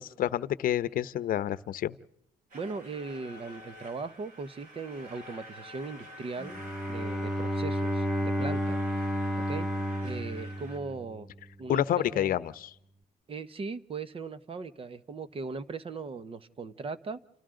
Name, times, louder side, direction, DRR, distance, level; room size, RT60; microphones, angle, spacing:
voice 1, 0.0-2.0 11.7-12.7, left 11 dB, 55° left, 16 dB, 0.8 m, -29 dB
voice 2, 2.5-6.6 6.9-8.8 9.4-9.7 10.0-11.3 11.6-12.3 13.3-17.2, right 4 dB, 35° right, 14 dB, 1.1 m, -39 dB
sound 1, 2.5-10.8, equal, 60° right, 6.3 m, -48 dB
Bowed string instrument, 6.4-11.4, equal, ahead, 0.9 m, -31 dB
30.0 x 27.5 x 3.9 m, 0.75 s
cardioid pair, 110°, 17 cm